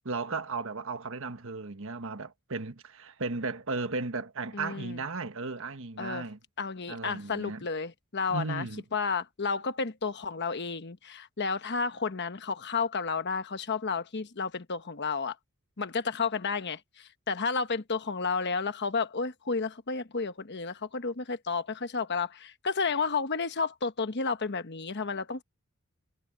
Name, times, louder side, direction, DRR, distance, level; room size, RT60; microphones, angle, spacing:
voice 1, 0.0-6.4 6.9-7.7 8.3-8.8, right 3 dB, 65° right, 1.4 m, -35 dB
voice 2, 4.5-5.0 6.0-6.2 6.6-8.7 8.9-15.4 15.8-25.4, left 4 dB, 50° left, 1.1 m, -32 dB
head